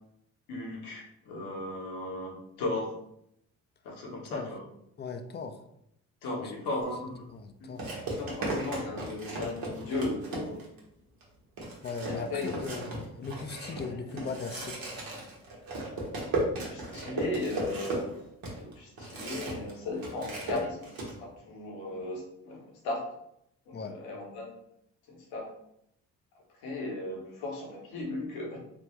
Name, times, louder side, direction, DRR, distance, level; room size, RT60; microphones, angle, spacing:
voice 1, 0.5-2.9 3.8-4.6 6.2-7.3 7.6-7.7 8.1-10.6 12.0-12.7 14.1-14.2 16.6-18.1 18.6-23.0 23.7-24.6 25.1-25.5 26.6-28.6, left 2 dB, 85° left, -2 dB, 1.0 m, -36 dB
voice 2, 5.0-5.6 6.4-6.5 7.3-7.9 11.8-14.9 23.7-23.9, left 5 dB, 30° left, 7 dB, 0.4 m, -38 dB
sound 1, 6.8-7.0 7.8-10.8 11.2-11.3 11.6-19.7 20.0-21.1, right 2 dB, 75° right, 1.1 m, -36 dB
3.4 x 2.2 x 3.0 m, 0.76 s
supercardioid pair, 60°, 36 cm